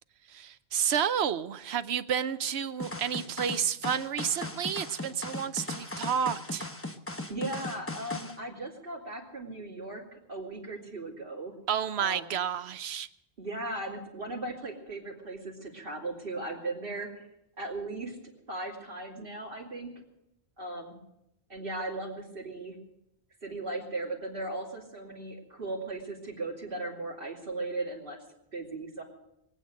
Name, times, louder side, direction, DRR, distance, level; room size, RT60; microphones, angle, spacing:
voice 1, 0.3-6.7 11.7-13.1, right 8 dB, 85° right, 13 dB, 1.0 m, -30 dB
sound 1, 2.8-8.4, left 2 dB, 15° left, 0.9 m, -38 dB
voice 2, 7.3-11.5 12.0-12.3 13.4-17.2 17.6-18.2 18.5-19.9 20.6-20.9 21.5-22.8 23.4-28.2 28.5-29.0, right 2 dB, 60° right, -2 dB, 3.2 m, -37 dB
22.5 x 8.9 x 6.5 m, 0.85 s
omnidirectional pair, 1.1 m